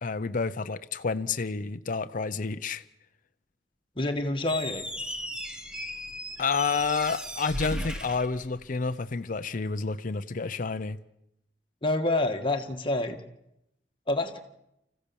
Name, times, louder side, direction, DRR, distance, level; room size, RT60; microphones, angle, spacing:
voice 1, 0.0-2.8 6.4-11.0, left 4 dB, 50° left, 0.6 m, -29 dB
voice 2, 4.0-4.8 11.8-13.2 14.1-14.4, left 2 dB, 30° left, 1.7 m, -27 dB
Squeak, 4.4-9.0, equal, 5° right, 1.5 m, -37 dB
25.5 x 15.0 x 7.0 m
head